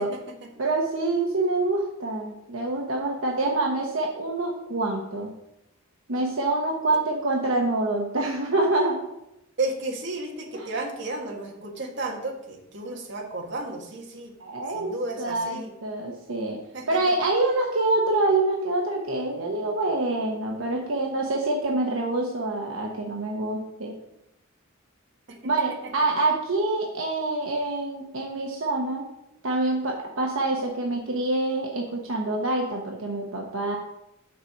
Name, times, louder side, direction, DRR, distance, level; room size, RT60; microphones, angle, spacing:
voice 1, 0.0-0.5 9.6-14.3 14.7-15.7 16.7-17.1 25.3-25.5 25.8-25.9, right 2 dB, 60° right, 0 dB, 1.6 m, -33 dB
voice 2, 0.6-5.3 6.1-9.0 10.5-10.7 14.4-14.9 15.2-16.6 16.9-23.9 25.4-29.1 29.4-33.8, right 2 dB, 80° right, 0 dB, 1.0 m, -26 dB
6.6 x 4.5 x 6.7 m, 0.87 s
head